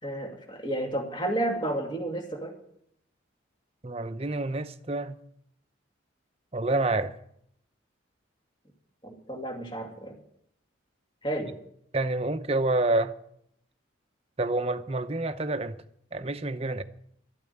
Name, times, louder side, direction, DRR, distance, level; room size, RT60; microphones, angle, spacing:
voice 1, 0.0-2.5 9.0-10.2 11.2-11.6, right 1 dB, 25° left, 2.5 m, -31 dB
voice 2, 3.8-5.2 6.5-7.1 11.9-13.1 14.4-15.8 16.1-16.8, right 2 dB, 30° right, 0.7 m, -28 dB
12.5 x 8.8 x 9.5 m
head